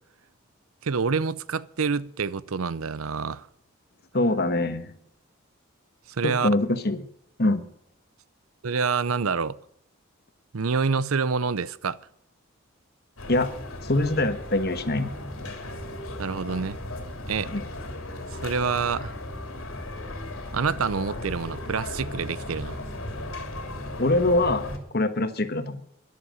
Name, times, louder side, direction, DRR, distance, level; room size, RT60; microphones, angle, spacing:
voice 1, 0.8-3.5 6.2-6.5 8.6-9.6 10.5-12.0 16.2-16.8 17.3-17.5 18.4-19.1 20.5-22.8, right 5 dB, 80° right, 0.6 m, -27 dB
voice 2, 4.1-4.9 6.2-7.0 7.4-7.6 13.3-13.5 13.8-15.1 17.5-17.6 24.0-24.7 24.9-25.8, left 2 dB, 50° left, 1.3 m, -24 dB
sound 1, 13.2-24.8, left 1 dB, 80° left, 3.0 m, -36 dB
12.0 x 11.5 x 7.8 m
head